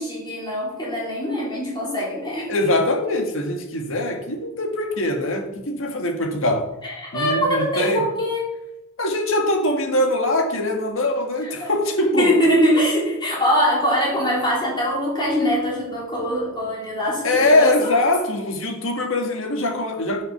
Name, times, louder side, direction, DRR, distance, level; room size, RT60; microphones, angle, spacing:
voice 1, 0.0-2.5 6.8-8.6 11.4-11.7 12.0-18.0, equal, 20° left, -5 dB, 3.4 m, -22 dB
voice 2, 2.5-6.7 7.1-8.0 9.0-12.3 17.2-20.2, left 1 dB, 70° left, 4 dB, 1.7 m, -22 dB
10.0 x 5.9 x 5.9 m, 0.90 s
head